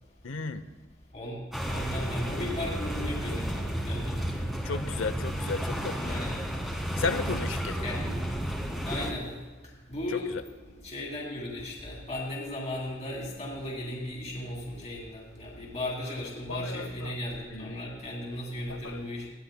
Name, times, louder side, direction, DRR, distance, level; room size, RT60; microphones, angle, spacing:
voice 1, 0.2-0.6 4.6-6.2 7.0-7.8 10.1-10.4 16.5-17.2 17.5-17.9 18.7-19.1, left 4 dB, 85° left, 12 dB, 0.7 m, -34 dB
voice 2, 1.1-4.2 6.0-6.5 7.8-8.1 8.8-9.3 9.6-10.3 10.6-19.3, left 1 dB, 35° left, -2 dB, 2.6 m, -36 dB
sound 1, 1.5-9.1, equal, ahead, 1.7 m, -32 dB
20.0 x 15.5 x 2.2 m, 1.3 s
head